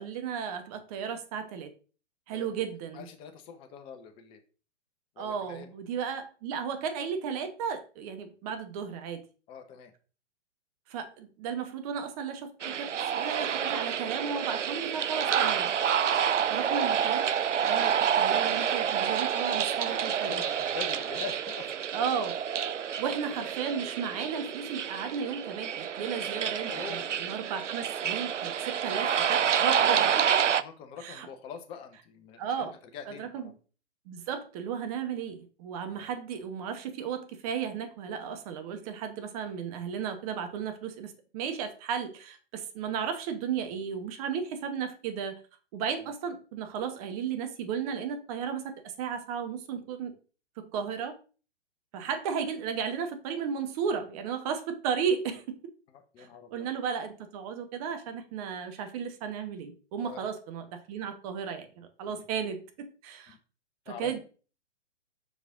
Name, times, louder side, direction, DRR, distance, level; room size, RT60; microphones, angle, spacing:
voice 1, 0.0-1.7 2.3-3.1 5.2-9.2 10.9-15.7 16.5-17.3 17.7-20.3 21.9-22.4 23.0-30.4 31.0-31.3 32.4-32.7 33.1-33.5 34.1-45.4 45.7-50.1 50.6-51.2 51.9-55.4 56.2-62.6 63.0-63.4 64.0-64.2, right 7 dB, 30° right, 7 dB, 1.1 m, -34 dB
voice 2, 2.9-4.4 5.2-5.7 9.5-9.9 16.1-16.2 20.3-21.7 26.7-27.3 30.6-32.7 32.9-33.5 35.9-36.1 55.9-56.7 60.0-60.3 62.1-62.2 63.3-63.4 63.9-64.2, left 7 dB, 15° left, 6 dB, 0.6 m, -44 dB
sound 1, 12.6-30.6, right 8 dB, 90° right, 0.5 m, -28 dB
5.6 x 4.8 x 3.5 m, 0.37 s
figure-of-eight pair, 120°, 35 cm